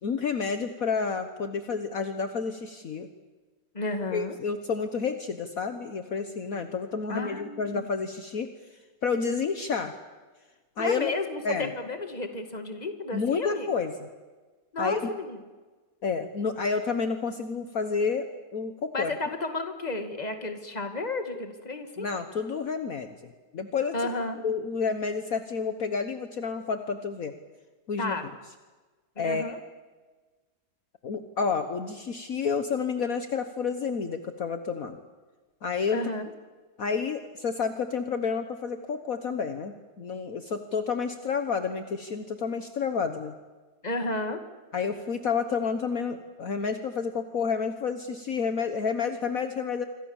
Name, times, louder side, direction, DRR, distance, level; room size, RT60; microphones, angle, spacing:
voice 1, 0.0-3.1 4.1-8.5 9.0-9.9 10.8-11.1 11.4-11.7 13.1-14.1 14.8-15.0 16.0-18.3 18.5-19.1 22.0-23.9 24.4-27.3 27.9-28.1 29.2-29.5 31.0-35.0 35.6-36.0 36.8-43.3 44.7-49.8, left 5 dB, 55° left, 8 dB, 1.6 m, -30 dB
voice 2, 3.7-4.4 7.1-7.8 10.8-13.7 14.7-15.4 18.9-22.1 23.9-24.4 28.0-28.3 29.2-29.6 35.9-36.3 43.8-44.4, left 2 dB, 25° left, 7 dB, 2.2 m, -32 dB
27.0 x 25.0 x 7.3 m, 1.3 s
omnidirectional pair, 1.8 m